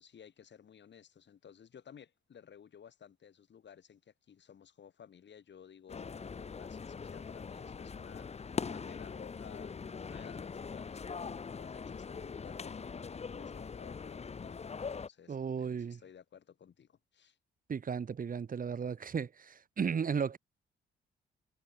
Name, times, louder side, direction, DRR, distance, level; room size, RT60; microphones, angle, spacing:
voice 1, 0.0-14.6 14.9-17.4, left 8 dB, 55° left, 6.9 m, -56 dB
sound 1, 5.9-15.1, left 5 dB, 30° left, 0.8 m, -42 dB
voice 2, 15.3-16.0 17.7-20.4, right 6 dB, 40° right, 1.2 m, -35 dB
hypercardioid pair, 50°, 21 cm